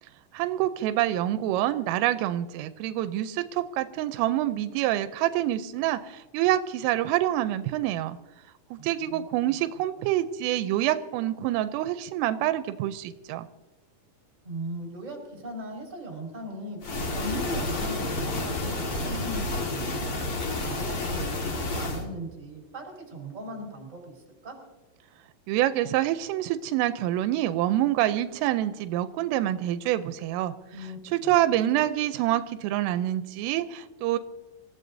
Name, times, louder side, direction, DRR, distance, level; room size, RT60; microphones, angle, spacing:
voice 1, 0.3-8.2 8.7-13.5 25.5-30.5 31.1-34.2, right 13 dB, 85° right, 11 dB, 3.2 m, -26 dB
voice 2, 8.8-9.5 10.0-10.1 14.4-16.8 17.1-24.6 30.7-31.4, right 1 dB, 15° right, 0 dB, 4.2 m, -39 dB
sound 1, 16.8-22.0, left 2 dB, 60° left, 1.5 m, -30 dB
27.0 x 15.0 x 2.7 m, 1.1 s
omnidirectional pair, 5.8 m